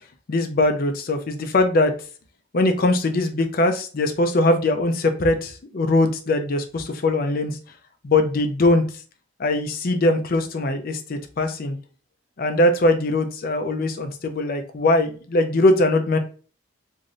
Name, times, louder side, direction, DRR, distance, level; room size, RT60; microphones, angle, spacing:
voice 1, 0.3-1.9 2.5-7.6 8.0-8.8 9.4-11.8 12.4-16.2, left 2 dB, 45° left, 7 dB, 0.5 m, -21 dB
2.6 x 2.5 x 3.0 m, 0.38 s
head